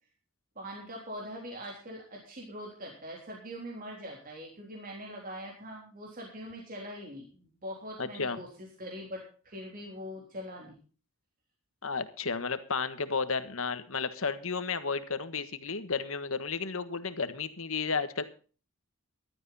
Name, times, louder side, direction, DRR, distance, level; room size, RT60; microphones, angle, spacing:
voice 1, 0.6-10.8, equal, 40° right, -1 dB, 3.6 m, -42 dB
voice 2, 8.0-8.4 11.8-18.2, left 5 dB, 65° left, 11 dB, 1.5 m, -33 dB
15.0 x 12.5 x 4.2 m, 0.39 s
head